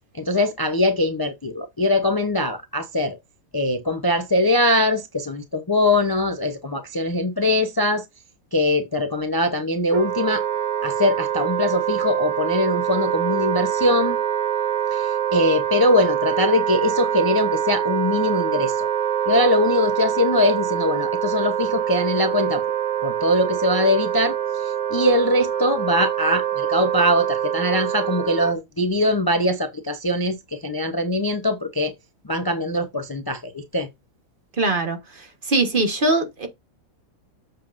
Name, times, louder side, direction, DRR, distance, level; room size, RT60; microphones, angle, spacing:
voice 1, 0.1-3.2 3.5-8.0 8.5-10.4 10.8-14.2 14.9-18.9 19.3-22.6 23.0-31.9 32.3-33.9, left 1 dB, 20° left, 0.6 m, -22 dB
Wind instrument woodwind instrument, 9.9-28.5, right 9 dB, 90° right, 2.2 m, -25 dB
voice 2, 34.6-36.5, right 2 dB, 40° right, 1.4 m, -22 dB
7.7 x 7.3 x 2.5 m
omnidirectional pair, 1.5 m